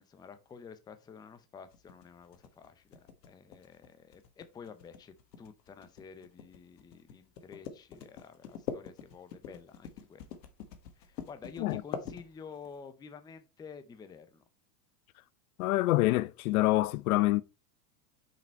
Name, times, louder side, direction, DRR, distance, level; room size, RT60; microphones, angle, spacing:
voice 1, 0.0-10.4 11.0-14.4, left 6 dB, 10° left, 0.5 m, -50 dB
sound 1, 1.7-12.7, left 7 dB, 85° left, 1.5 m, -44 dB
voice 2, 15.6-17.4, left 18 dB, 60° left, 0.6 m, -26 dB
6.0 x 5.2 x 4.3 m
supercardioid pair, 125°, 48 cm